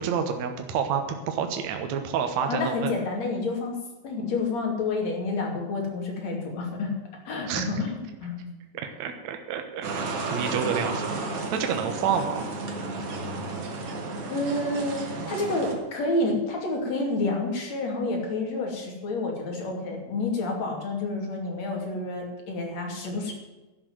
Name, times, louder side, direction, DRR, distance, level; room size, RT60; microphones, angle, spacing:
voice 1, 0.0-2.9 7.5-7.9 8.8-10.0 10.3-11.1 11.5-12.4, right 7 dB, 65° right, 5 dB, 2.3 m, -29 dB
voice 2, 2.5-3.8 4.0-6.9 7.3-8.5 14.3-23.3, left 2 dB, 55° left, 0 dB, 3.7 m, -29 dB
sound 1, 9.8-15.7, right 3 dB, 50° right, 2.5 m, -32 dB
11.5 x 7.7 x 9.2 m, 1.1 s
omnidirectional pair, 3.8 m